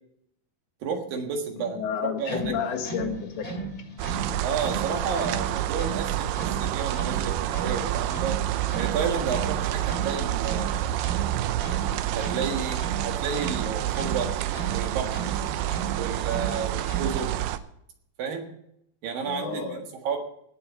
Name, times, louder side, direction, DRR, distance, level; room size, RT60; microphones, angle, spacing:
voice 1, 0.8-2.4 4.4-8.3 8.7-10.8 12.1-14.3 14.7-15.1 16.0-17.3 18.2-18.5 19.0-20.2, right 6 dB, 65° right, 4 dB, 3.2 m, -31 dB
voice 2, 1.6-3.7 19.3-19.8, left 7 dB, 75° left, 1 dB, 3.7 m, -31 dB
sound 1, 2.2-17.4, right 3 dB, 20° left, 2.8 m, -36 dB
sound 2, 4.0-17.6, right 13 dB, 80° right, 2.6 m, -28 dB
18.0 x 7.8 x 5.8 m, 0.74 s
omnidirectional pair, 4.6 m